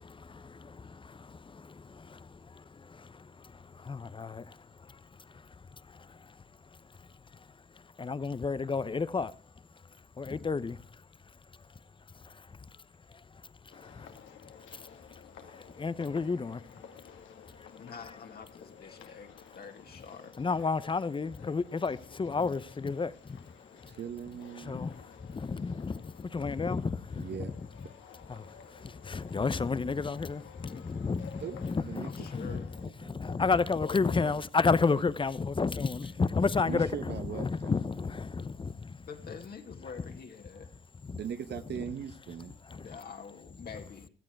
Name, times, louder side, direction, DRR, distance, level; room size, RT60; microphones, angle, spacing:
voice 1, 0.0-4.6 4.9-5.0 5.9-6.2 8.0-9.3 10.2-10.8 12.2-12.3 13.7-14.1 14.7-14.8 15.5-16.6 20.4-23.4 24.7-25.0 25.2-27.3 28.3-39.0 41.0-41.2 42.7-42.9, left 4 dB, 25° left, 0.8 m, -32 dB
sound 1, 13.7-32.9, left 7 dB, 75° left, 2.5 m, -53 dB
voice 2, 17.7-20.4 30.4-30.5 32.0-32.7 33.3-33.4 33.8-34.0 36.7-36.8 39.0-40.7 42.7-44.1, left 6 dB, 50° left, 2.4 m, -46 dB
voice 3, 23.8-25.0 27.2-27.5 31.4-33.4 36.7-38.0 41.1-42.6, right 8 dB, 60° right, 1.3 m, -41 dB
16.5 x 12.5 x 4.6 m
cardioid pair, 90°, 20 cm